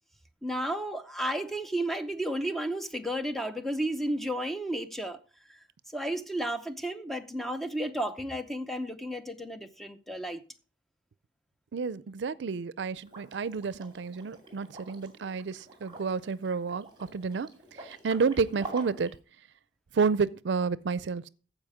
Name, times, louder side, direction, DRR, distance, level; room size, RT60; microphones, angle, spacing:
voice 1, 0.4-5.2 5.5-5.6 5.9-10.4, right 1 dB, ahead, 0.7 m, -33 dB
voice 2, 11.7-17.5 17.8-19.1 19.9-21.3, right 5 dB, 80° right, 0.5 m, -30 dB
Liquid, 13.0-19.1, right 2 dB, 25° right, 2.4 m, -47 dB
15.0 x 5.0 x 4.9 m
head